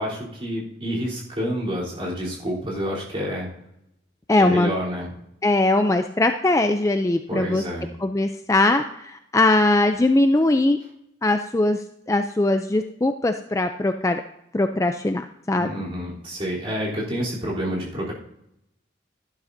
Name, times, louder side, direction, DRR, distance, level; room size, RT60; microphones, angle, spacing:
voice 1, 0.0-3.5 4.4-5.1 7.3-7.9 15.6-18.1, equal, 30° right, -6 dB, 3.4 m, -28 dB
voice 2, 4.3-4.7 5.4-7.6 8.0-10.8 11.2-14.2 14.5-15.7, left 2 dB, 15° left, 7 dB, 0.4 m, -21 dB
12.5 x 11.5 x 2.7 m, 0.79 s
head